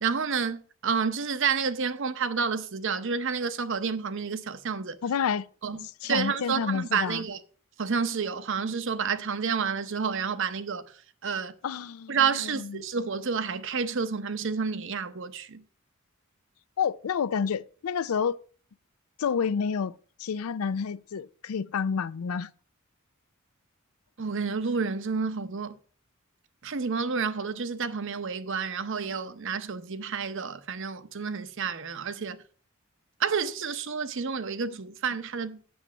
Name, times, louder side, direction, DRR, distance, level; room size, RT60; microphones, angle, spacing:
voice 1, 0.0-5.0 5.6-5.8 6.1-7.4 7.8-10.8 11.2-11.5 12.1-15.6 24.2-25.8 26.6-32.4 33.2-35.6, right 5 dB, 60° right, 0.7 m, -29 dB
voice 2, 5.0-5.5 5.8-7.3 11.6-12.8 16.8-18.4 19.2-22.5, left 6 dB, 85° left, 0.4 m, -29 dB
7.9 x 6.7 x 6.1 m
head